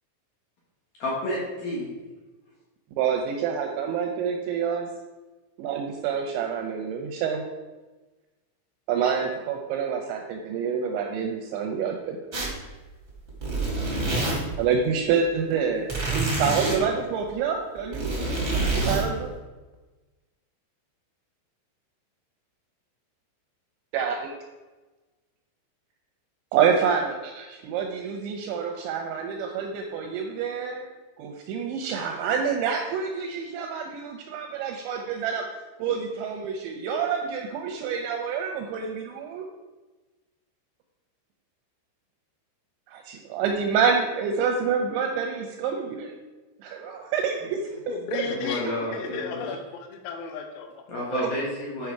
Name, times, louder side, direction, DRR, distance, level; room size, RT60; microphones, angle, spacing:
voice 1, 1.0-1.9 48.0-49.6 50.9-51.9, left 1 dB, 65° left, -4 dB, 2.3 m, -31 dB
voice 2, 3.0-4.9 5.6-7.4 8.9-12.2 14.6-18.1 18.5-19.3 23.9-24.3 26.5-30.9 31.2-35.4 35.8-39.4 42.9-46.1 46.6-47.6 47.9-48.5 49.1-49.2 51.1-51.2, right 6 dB, 80° right, 3 dB, 2.7 m, -27 dB
sound 1, 12.3-12.7 13.1-14.6 15.9-16.8 17.8-19.0, right 2 dB, 50° right, 0.7 m, -26 dB
voice 3, 47.9-50.8, left 6 dB, 85° left, 5 dB, 3.5 m, -34 dB
10.0 x 5.2 x 4.7 m, 1.2 s
omnidirectional pair, 6.0 m